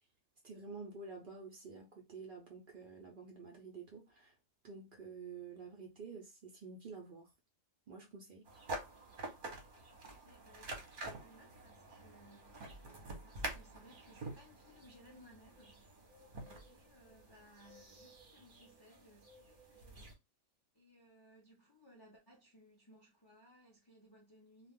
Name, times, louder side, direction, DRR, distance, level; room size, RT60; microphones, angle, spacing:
voice 1, 0.4-4.3 4.6-7.3 7.9-8.5, right 4 dB, 80° right, 0.4 m, -50 dB
sound 1, 8.5-20.1, right 2 dB, 40° right, 0.8 m, -48 dB
voice 2, 9.7-15.9 16.5-20.1 20.7-24.7, equal, 30° left, 0.4 m, -63 dB
2.3 x 2.3 x 3.5 m
omnidirectional pair, 1.7 m